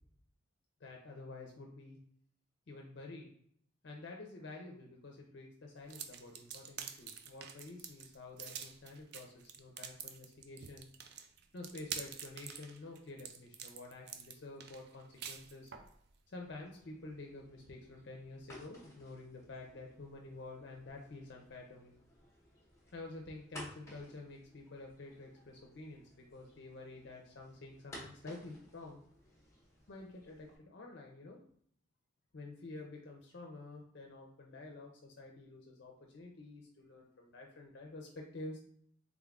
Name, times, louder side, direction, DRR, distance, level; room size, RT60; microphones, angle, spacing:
voice 1, 0.8-2.0 2.7-3.3 3.8-10.9 11.5-15.7 16.3-21.9 22.9-29.0 29.9-31.4 32.3-38.6, left 2 dB, 60° left, 0 dB, 0.5 m, -49 dB
sound 1, 5.9-15.9, right 8 dB, 55° right, 0.3 m, -47 dB
sound 2, 16.4-30.6, left 1 dB, 15° left, 0.7 m, -57 dB
3.6 x 3.5 x 2.3 m, 0.64 s
head